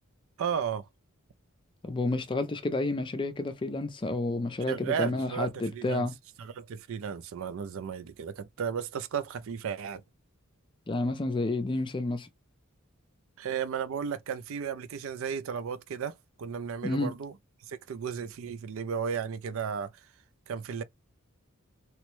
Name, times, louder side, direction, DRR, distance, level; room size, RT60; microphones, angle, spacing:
voice 1, 0.4-0.9 4.7-6.1 6.4-10.0 13.4-17.3 17.7-19.9 20.5-20.8, right 7 dB, 65° right, 0.4 m, -34 dB
voice 2, 1.8-6.1 10.9-12.3 16.8-17.1, left 2 dB, 25° left, 0.4 m, -30 dB
3.0 x 2.1 x 3.0 m
head